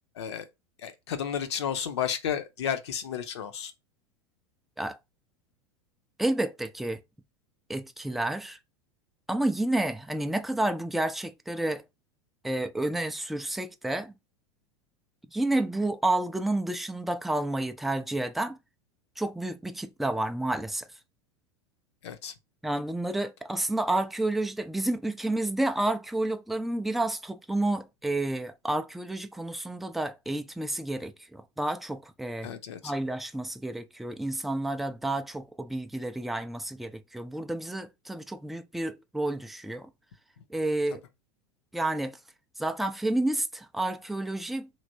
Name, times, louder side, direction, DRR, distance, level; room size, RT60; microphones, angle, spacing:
voice 1, 0.2-0.5 0.8-3.7 22.0-22.3 32.4-32.9, left 8 dB, 65° left, 0.7 m, -32 dB
voice 2, 6.2-7.0 7.7-8.6 9.3-11.8 12.4-14.1 15.3-18.6 19.2-20.9 22.6-32.5 32.8-39.9 40.5-41.0 41.7-42.2 42.6-44.7, right 2 dB, ahead, 0.3 m, -30 dB
3.2 x 2.8 x 2.7 m
figure-of-eight pair, 85°, 16 cm